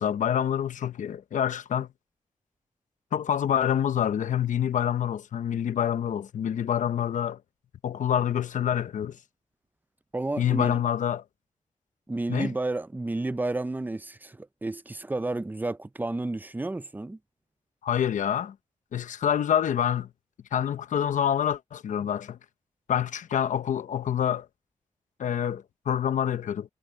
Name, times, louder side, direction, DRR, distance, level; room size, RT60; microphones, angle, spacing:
voice 1, 0.0-1.9 3.1-7.4 7.8-9.2 10.4-11.2 12.3-12.5 17.8-18.5 18.9-20.1 20.5-22.4 22.9-24.5 25.2-26.7, left 9 dB, 85° left, 0.9 m, -27 dB
voice 2, 10.1-10.8 12.1-17.2, right 2 dB, 15° right, 0.6 m, -31 dB
wide cardioid pair, 105°, 13 cm